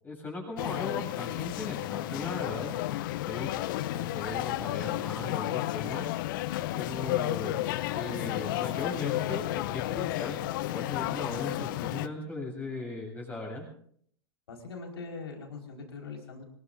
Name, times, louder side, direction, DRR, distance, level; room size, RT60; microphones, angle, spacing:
voice 1, 0.0-2.7 3.3-6.0 6.7-7.6 7.9-10.4 10.7-13.6, left 2 dB, 15° left, -1 dB, 7.3 m, -38 dB
sound 1, 0.6-12.1, left 15 dB, 50° left, 0.7 m, -32 dB
voice 2, 14.5-16.4, left 4 dB, 70° left, 1 dB, 4.6 m, -42 dB
25.0 x 21.0 x 2.6 m, 0.63 s
figure-of-eight pair, 95°, 14 cm